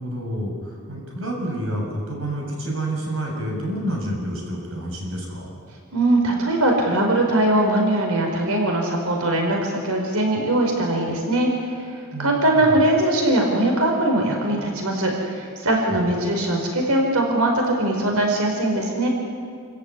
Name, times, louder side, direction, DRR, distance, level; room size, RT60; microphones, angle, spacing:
voice 1, 0.0-5.5 12.1-12.8 15.9-16.0, right 1 dB, 65° right, 0 dB, 7.0 m, -29 dB
voice 2, 5.9-19.1, right 1 dB, 85° right, 1 dB, 4.7 m, -21 dB
29.5 x 15.0 x 9.8 m, 2.2 s
head